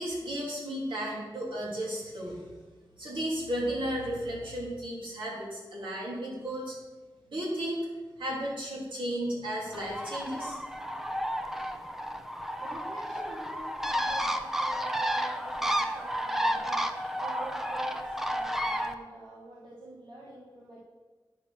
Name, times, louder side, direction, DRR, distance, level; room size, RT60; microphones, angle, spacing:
voice 1, 0.0-2.5 3.0-6.8 7.3-7.8 8.2-10.6, right 1 dB, 65° right, -5 dB, 3.3 m, -34 dB
Bird, 9.7-18.9, equal, 5° right, 0.5 m, -32 dB
voice 2, 12.6-20.8, right 1 dB, 50° right, -6 dB, 1.9 m, -46 dB
9.6 x 5.7 x 6.0 m, 1.3 s
wide cardioid pair, 125°, 9 cm